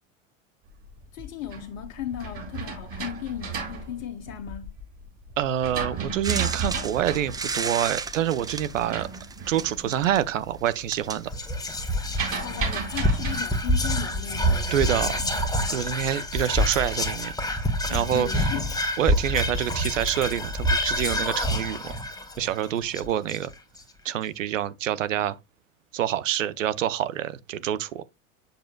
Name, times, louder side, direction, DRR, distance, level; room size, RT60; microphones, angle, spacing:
sound 1, 1.0-4.8 5.3-10.1 10.5-10.9 11.2-13.4, right 5 dB, 35° right, 4.2 m, -34 dB
voice 1, 1.1-4.7 12.3-15.8 17.9-18.8, left 10 dB, 55° left, 1.0 m, -36 dB
voice 2, 5.4-9.1 9.5-11.3 14.7-15.1 15.7-17.3 17.9-18.5 19.0-22.0 22.4-23.5 24.0-25.4 25.9-28.0, right 11 dB, 75° right, 0.7 m, -27 dB
sound 2, 6.2-11.9 12.9-13.0, right 4 dB, 10° right, 0.5 m, -34 dB
Whispering, 11.3-23.8, equal, 10° left, 1.3 m, -27 dB
7.9 x 6.7 x 2.2 m
figure-of-eight pair, 75°, 39 cm